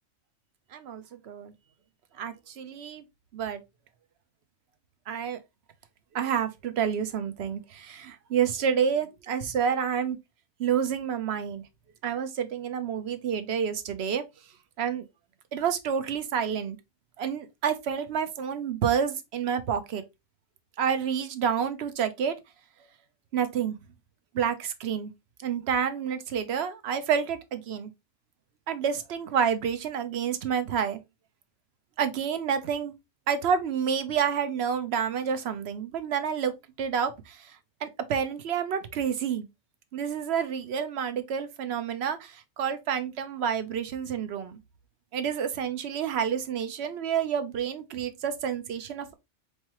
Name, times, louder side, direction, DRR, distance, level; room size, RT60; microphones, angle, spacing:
voice 1, 0.7-1.5 2.2-3.0 3.3-3.6 5.1-5.4 6.1-10.2 10.6-11.6 12.0-14.2 14.8-15.0 15.5-16.8 17.2-20.0 20.8-22.4 23.3-23.8 24.3-25.1 25.4-27.9 28.7-31.0 32.0-32.9 33.3-36.5 36.8-37.5 37.8-39.5 39.9-44.6 45.1-49.1, right 7 dB, 60° right, 0.9 m, -29 dB
4.3 x 3.2 x 2.9 m
omnidirectional pair, 1.3 m